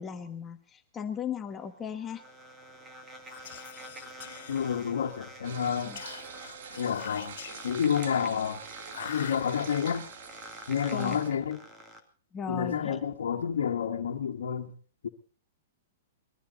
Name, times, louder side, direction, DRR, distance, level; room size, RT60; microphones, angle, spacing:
voice 1, 0.0-2.2 5.8-6.0 10.9-11.2 12.3-13.0, left 7 dB, 20° left, 1.4 m, -37 dB
sound 1, 1.5-12.0, right 1 dB, 15° right, 2.3 m, -47 dB
Whispering, 3.2-5.2 6.0-8.0 8.9-9.9, left 10 dB, 65° left, 2.0 m, -45 dB
voice 2, 4.5-5.9 6.8-7.4 7.6-8.6 9.0-10.1 10.7-11.6 12.5-14.7 15.0-15.1, left 7 dB, 85° left, 1.5 m, -29 dB
sound 2, 5.4-11.3, right 7 dB, 70° right, 2.1 m, -45 dB
22.0 x 14.0 x 4.1 m
hypercardioid pair, 145°, 0 cm